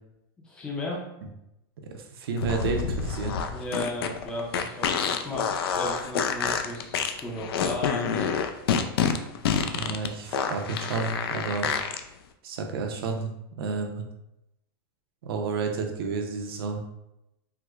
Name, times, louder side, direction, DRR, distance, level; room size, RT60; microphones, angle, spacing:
voice 1, 0.4-1.0 3.5-8.5, left 1 dB, 5° left, -2 dB, 0.5 m, -35 dB
voice 2, 1.9-3.4 9.7-11.7 12.4-14.0 15.2-16.8, right 4 dB, 80° right, 3 dB, 0.6 m, -31 dB
sound 1, 2.4-12.0, left 7 dB, 85° left, 0.4 m, -27 dB
4.6 x 2.1 x 2.3 m, 0.88 s
supercardioid pair, 160°, 12 cm